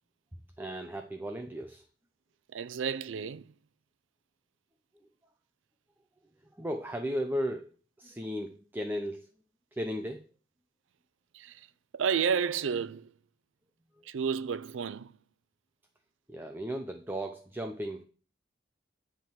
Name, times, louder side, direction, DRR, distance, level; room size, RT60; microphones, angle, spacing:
voice 1, 0.6-1.8 6.5-9.3 9.7-10.2 16.3-18.0, equal, 10° right, 0.6 m, -35 dB
voice 2, 2.5-3.5 11.3-11.7 11.9-13.1 14.1-15.1, right 6 dB, 80° right, 0.4 m, -31 dB
10.0 x 3.7 x 7.2 m
head